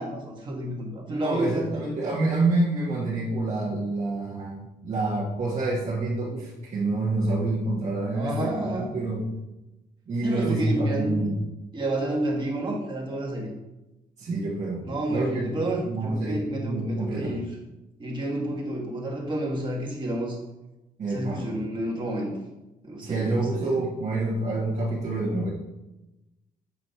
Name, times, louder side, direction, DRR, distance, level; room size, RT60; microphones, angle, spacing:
voice 1, 0.0-1.8 8.1-8.9 10.2-11.4 11.7-13.5 14.8-17.5 18.0-20.4 21.1-22.4 22.8-23.8, right 1 dB, 30° right, -2 dB, 1.6 m, -30 dB
voice 2, 1.1-8.5 8.9-9.2 10.1-11.4 14.2-14.8 15.1-17.3 21.0-21.5 23.0-25.5, right 2 dB, 45° right, -7 dB, 1.5 m, -27 dB
7.5 x 3.0 x 5.5 m, 1.0 s
cardioid pair, 130°, 16 cm